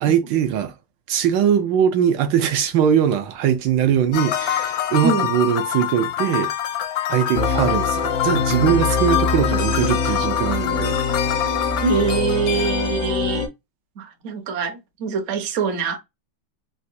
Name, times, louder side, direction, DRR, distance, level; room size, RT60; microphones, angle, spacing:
voice 1, 0.0-0.7 1.1-6.5 7.1-11.0, right 9 dB, 80° right, 1.2 m, -21 dB
sound 1, 4.1-13.1, left 11 dB, 75° left, 1.1 m, -26 dB
sound 2, 7.3-13.5, left 4 dB, 45° left, 0.6 m, -24 dB
voice 2, 11.8-13.5 14.0-16.0, right 5 dB, 55° right, 0.8 m, -24 dB
4.0 x 2.1 x 2.6 m
omnidirectional pair, 2.1 m